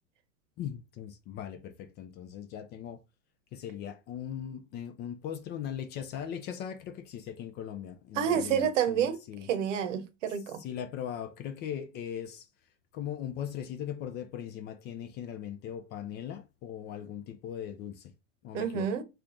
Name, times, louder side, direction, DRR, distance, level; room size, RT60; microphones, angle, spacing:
voice 1, 0.6-3.0 3.5-9.5 10.6-12.5 12.9-18.1 18.4-18.9, left 9 dB, 25° left, 0.4 m, -39 dB
voice 2, 8.1-9.2 9.5-10.6 18.5-19.0, right 8 dB, 65° right, 0.9 m, -29 dB
3.4 x 2.3 x 3.7 m
hypercardioid pair, 115°, 39 cm